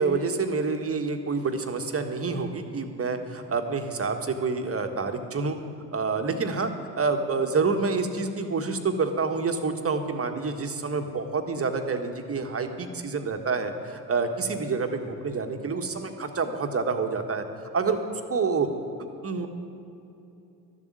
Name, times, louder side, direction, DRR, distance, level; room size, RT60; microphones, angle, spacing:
voice 1, 0.0-5.6 5.9-17.4 17.7-18.7 19.2-19.5, right 4 dB, 30° right, 6 dB, 1.6 m, -28 dB
12.5 x 7.3 x 9.6 m, 2.8 s
hypercardioid pair, 65°, 44 cm